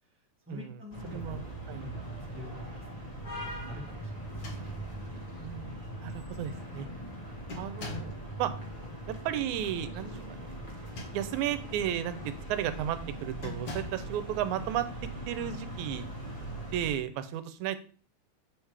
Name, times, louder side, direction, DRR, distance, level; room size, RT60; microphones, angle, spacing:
voice 1, 0.5-1.4 1.8-1.9 2.3-2.6 2.9-3.0 3.3-4.8, left 1 dB, 20° right, -3 dB, 0.3 m, -47 dB
sound 1, 0.9-16.9, right 1 dB, 65° left, 0.4 m, -41 dB
voice 2, 1.1-1.9 5.4-6.9 7.5-8.5 9.3-10.4 11.1-14.9 15.3-16.1 16.7-17.8, right 11 dB, 85° right, 11 dB, 2.0 m, -34 dB
sound 2, 1.5-16.7, right 2 dB, 40° right, 1.2 m, -50 dB
sound 3, 4.2-5.1 6.0-6.1 6.5-6.8 7.5-8.2 10.7-11.5 12.1-12.3 13.4-14.1, left 3 dB, 50° left, 1.5 m, -43 dB
7.7 x 3.3 x 4.8 m, 0.41 s
omnidirectional pair, 3.3 m